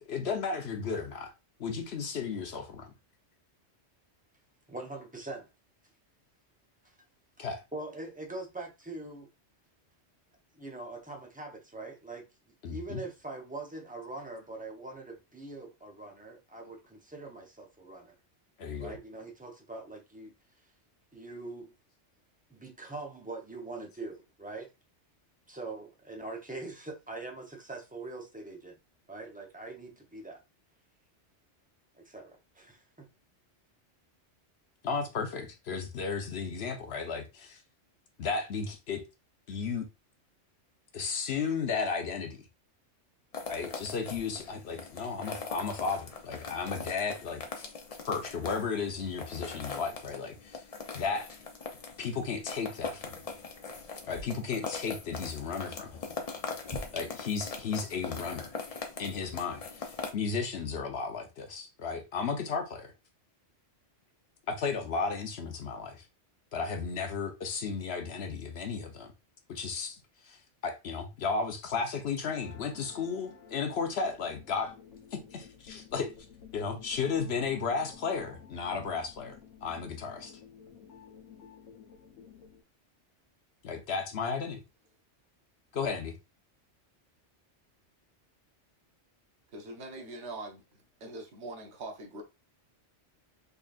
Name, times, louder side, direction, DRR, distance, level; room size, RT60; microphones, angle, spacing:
voice 1, 0.1-1.3 1.6-2.9 7.4-7.6 12.6-13.0 18.6-19.0 34.8-37.6 38.2-39.0 39.5-39.9 40.9-42.4 43.5-47.7 48.1-50.6 50.9-51.3 52.0-53.2 54.1-56.0 56.9-58.5 59.0-62.9 64.5-66.1 66.5-69.1 69.5-74.8 75.1-76.1 76.5-79.4 79.6-80.4 83.6-84.6 85.7-86.1, left 5 dB, 65° left, 1.0 m, -34 dB
voice 2, 4.7-5.5 7.7-9.3 10.5-12.2 12.7-18.1 18.8-20.3 21.1-21.7 22.5-24.7 25.5-28.8 29.1-30.4 31.9-33.1, right 2 dB, 10° right, 0.6 m, -43 dB
sound 1, 43.3-60.1, left 4 dB, 40° left, 0.6 m, -41 dB
sound 2, 72.2-82.6, left 7 dB, 85° left, 1.2 m, -53 dB
voice 3, 89.5-90.6 91.0-92.2, right 2 dB, 70° right, 1.2 m, -42 dB
3.8 x 3.4 x 2.4 m
omnidirectional pair, 1.2 m